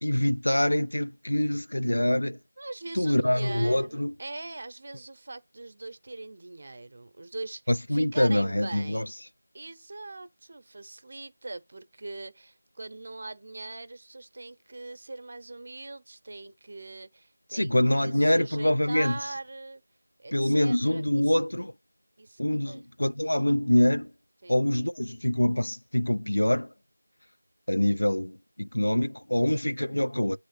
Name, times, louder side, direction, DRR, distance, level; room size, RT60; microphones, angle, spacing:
voice 1, 0.0-2.4 2.9-4.1 7.7-9.1 17.5-19.2 20.3-21.7 22.4-24.1 24.5-26.7 27.7-30.4, left 1 dB, 85° left, 0.6 m, -25 dB
voice 2, 2.6-7.6 7.9-9.1 9.5-19.8 20.2-21.3 22.2-22.9 24.4-24.6, right 2 dB, 30° right, 0.8 m, -41 dB
8.4 x 3.2 x 5.9 m
figure-of-eight pair, 175°, 0 cm